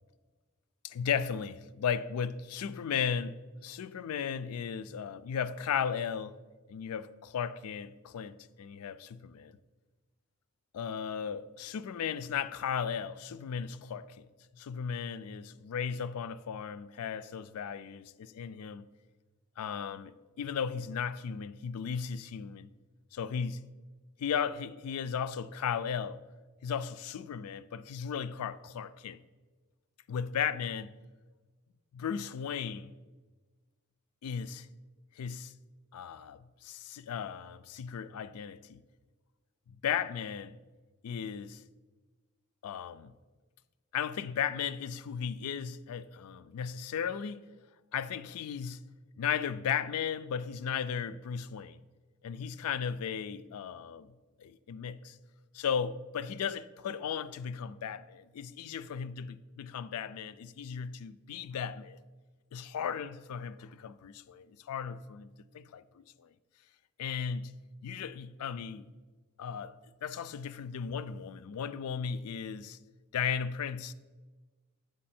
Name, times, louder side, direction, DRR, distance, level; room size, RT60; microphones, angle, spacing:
voice 1, 0.8-6.4 6.7-9.6 10.7-14.3 14.6-18.9 19.6-22.7 23.1-23.6 24.2-26.2 26.6-29.2 30.1-30.9 31.9-32.9 34.2-34.7 35.2-35.5 35.9-38.8 39.7-40.6 41.0-41.6 42.6-43.1 43.9-47.4 47.9-48.8 49.2-51.8 52.2-54.1 54.4-55.2 55.5-62.0 62.5-65.3 65.5-66.3 67.0-67.5 67.8-68.9 69.4-69.8 70.0-72.8 73.1-73.9, left 7 dB, 85° left, 0.3 m, -36 dB
7.6 x 5.3 x 4.3 m
head